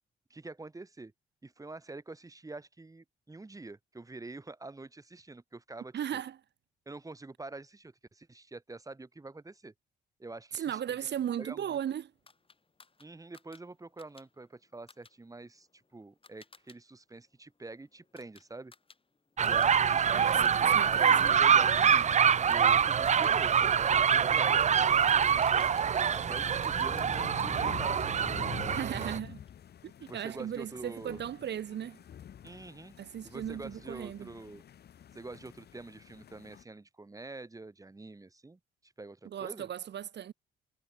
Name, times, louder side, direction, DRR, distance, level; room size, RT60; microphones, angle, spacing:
voice 1, 0.3-1.1 1.4-6.2 6.9-9.7 10.2-11.1 11.4-11.8 13.0-15.7 15.9-18.7 19.4-25.2 26.1-28.8 30.1-31.2 32.4-32.9 33.2-34.6 35.1-39.7, right 3 dB, 15° right, 2.5 m, -46 dB
voice 2, 5.9-6.4 10.5-12.1 20.1-21.3 28.7-29.4 29.8-32.0 33.0-34.3 39.2-40.3, right 10 dB, 60° right, 1.7 m, -37 dB
sound 1, 12.3-16.8 17.1-19.7 20.0-20.7 21.1-28.1 28.7-29.6, left 4 dB, 25° left, 5.6 m, -60 dB
sound 2, 19.4-29.2, right 7 dB, 35° right, 0.6 m, -25 dB
sound 3, 26.2-36.6, left 9 dB, 55° left, 1.2 m, -47 dB
cardioid pair, 90°, 20 cm